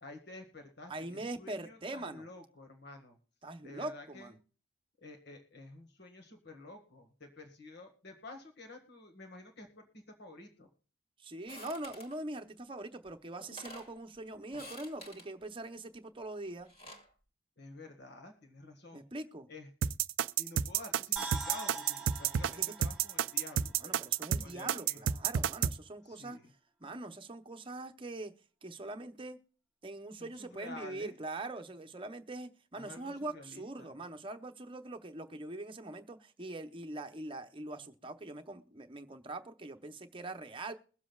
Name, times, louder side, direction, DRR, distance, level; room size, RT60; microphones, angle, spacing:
voice 1, 0.0-3.2 3.6-4.3 5.0-10.7 17.6-19.0 19.5-19.7 20.4-24.0 24.4-25.0 26.0-26.5 30.2-31.1 32.8-34.0, left 2 dB, 60° left, 1.8 m, -51 dB
voice 2, 0.9-2.3 3.4-4.4 11.2-16.7 18.9-19.5 22.6-22.7 23.8-26.4 26.8-28.3 28.6-29.4 29.8-40.7, right 2 dB, 25° right, 0.8 m, -43 dB
sound 1, 11.5-12.2 13.1-13.2 13.4-13.9 14.5-15.3 16.5-17.1, left 1 dB, 35° left, 2.3 m, -50 dB
sound 2, 19.8-25.7, right 8 dB, 90° right, 0.4 m, -30 dB
sound 3, 21.2-24.4 24.7-24.8, right 3 dB, 5° right, 1.6 m, -44 dB
22.0 x 7.4 x 2.4 m
head